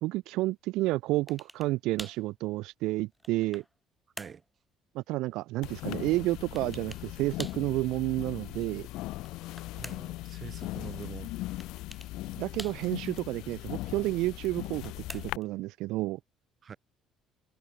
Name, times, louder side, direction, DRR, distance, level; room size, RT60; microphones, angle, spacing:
voice 1, 0.0-3.6 4.9-8.9 12.4-16.2, right 19 dB, 85° right, 0.5 m, -30 dB
sound 1, 1.3-1.7 2.0-2.3 2.9-3.7 4.2-4.5 6.6-7.1 7.4-7.7 9.1-10.2 11.6-12.1 12.6-13.1 14.6-15.5, equal, ahead, 0.4 m, -45 dB
sound 2, 5.6-15.4, left 18 dB, 80° left, 0.5 m, -39 dB
voice 2, 9.7-11.3 16.6-16.8, right 7 dB, 35° right, 1.8 m, -44 dB
cardioid pair, 140°, 0 cm